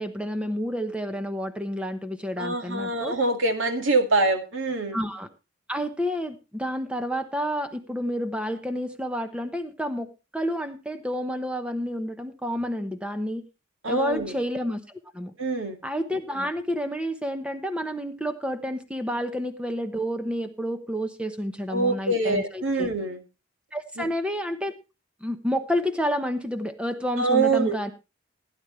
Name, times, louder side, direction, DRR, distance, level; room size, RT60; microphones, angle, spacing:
voice 1, 0.0-3.2 4.9-5.3 5.7-13.5 13.9-15.3 15.8-22.9 23.7-24.7 25.2-27.9, equal, 5° right, 8 dB, 0.9 m, -30 dB
voice 2, 2.4-5.0 13.8-14.3 15.4-15.8 21.7-23.2 24.0-24.1 27.2-27.9, right 3 dB, 75° right, 6 dB, 2.1 m, -24 dB
16.0 x 9.9 x 3.2 m, 0.29 s
head